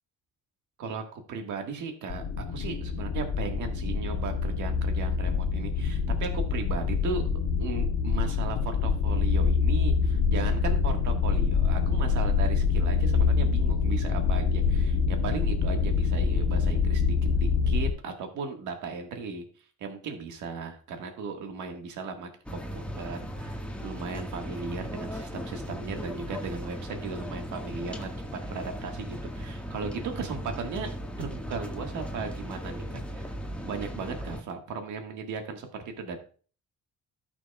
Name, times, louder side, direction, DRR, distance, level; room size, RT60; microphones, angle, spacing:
voice 1, 0.8-7.2 7.6-17.0 17.3-19.4 19.8-28.1 28.4-30.9 31.2-33.3 33.6-36.2, right 5 dB, 75° right, 4 dB, 1.5 m, -36 dB
sound 1, 2.1-17.9, left 5 dB, 75° left, 1.0 m, -25 dB
sound 2, 22.5-34.4, equal, 5° left, 1.4 m, -37 dB
14.5 x 6.2 x 2.2 m, 0.40 s
cardioid pair, 90°, 30 cm